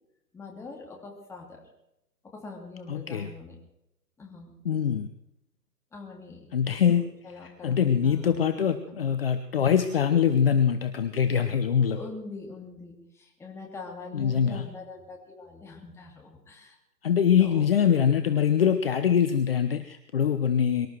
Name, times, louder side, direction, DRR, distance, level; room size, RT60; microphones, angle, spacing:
voice 1, 0.3-1.7 2.2-3.6 4.2-4.6 5.9-6.6 7.2-8.3 8.9-9.1 11.9-16.8 17.4-17.6, left 3 dB, 5° left, 0 dB, 2.4 m, -43 dB
voice 2, 2.9-3.3 4.6-5.1 6.5-7.0 7.4-12.0 14.1-14.7 17.0-20.9, left 8 dB, 35° left, 9 dB, 1.0 m, -23 dB
24.0 x 13.0 x 4.6 m, 0.84 s
figure-of-eight pair, 135°, 49 cm